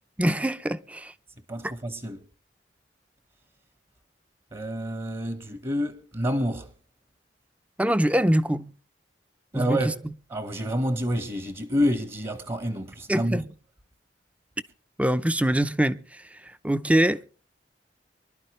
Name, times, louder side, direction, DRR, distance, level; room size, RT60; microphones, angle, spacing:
voice 1, 0.2-1.1 7.8-8.7 9.5-9.9 13.1-13.5 15.0-17.3, right 1 dB, 10° right, 0.6 m, -24 dB
voice 2, 1.5-2.3 4.5-6.7 9.5-9.9 10.3-13.4, equal, 30° right, 1.3 m, -28 dB
25.0 x 11.5 x 3.2 m
head